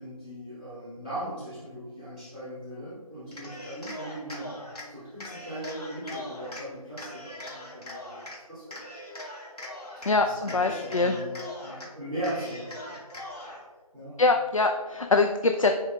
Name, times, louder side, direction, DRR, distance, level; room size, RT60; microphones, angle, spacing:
voice 1, 0.0-4.6 4.9-8.9 10.2-13.0 13.9-14.2, right 1 dB, ahead, -28 dB, 1.5 m, -39 dB
Cheering, 3.2-4.9 5.2-6.6 7.0-8.4 8.7-10.1 10.4-11.9 12.2-13.6, left 1 dB, 80° left, 1.6 m, -41 dB
voice 2, 10.1-11.1 14.2-15.7, left 3 dB, 60° left, 5 dB, 0.4 m, -23 dB
10.0 x 4.2 x 2.4 m, 1.4 s
figure-of-eight pair, 170°, 20 cm